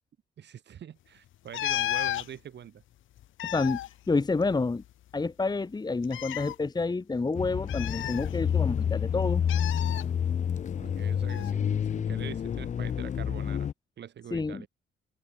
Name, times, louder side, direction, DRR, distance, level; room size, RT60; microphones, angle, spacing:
voice 1, 0.4-2.8 10.8-13.7 14.0-14.7, right 9 dB, 60° right, 3.2 m, -44 dB
sound 1, 1.5-2.3 3.2-4.9 5.1-5.2 6.0-6.5 7.7-8.7 9.5-10.0 11.3-11.5, left 13 dB, 80° left, 1.9 m, -33 dB
voice 2, 3.4-3.8 4.1-4.8 5.1-9.4 14.3-14.6, left 3 dB, 20° left, 1.2 m, -29 dB
sound 2, 7.3-13.7, left 8 dB, 40° left, 0.5 m, -29 dB
open air
cardioid pair, 90°, 20 cm